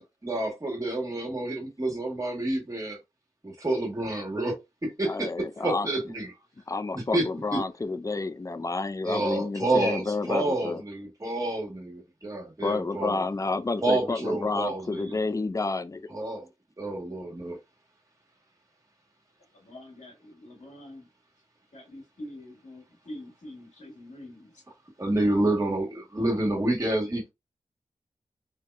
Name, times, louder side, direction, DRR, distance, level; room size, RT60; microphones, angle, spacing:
voice 1, 0.0-3.0 3.4-6.3 6.9-7.6 9.0-13.2 13.8-15.2 16.1-16.5 16.8-17.6 25.0-27.3, right 2 dB, 25° right, 1.6 m, -29 dB
voice 2, 5.1-5.9 6.7-10.8 12.6-16.0, left 3 dB, 25° left, 0.4 m, -30 dB
voice 3, 19.6-21.1 21.7-24.5, left 1 dB, 75° left, 1.8 m, -45 dB
3.5 x 2.7 x 2.3 m
cardioid pair, 60°, 13 cm